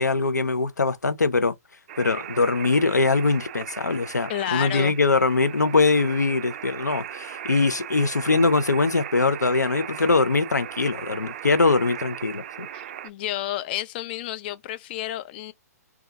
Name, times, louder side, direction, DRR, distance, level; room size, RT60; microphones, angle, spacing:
voice 1, 0.0-1.5 2.0-12.7, left 3 dB, 85° left, 0.5 m, -22 dB
sound 1, 1.9-13.1, right 11 dB, 40° right, 0.3 m, -38 dB
voice 2, 4.3-4.9 12.7-15.5, left 13 dB, 35° left, 0.4 m, -31 dB
2.7 x 2.4 x 3.4 m
figure-of-eight pair, 125°, 9 cm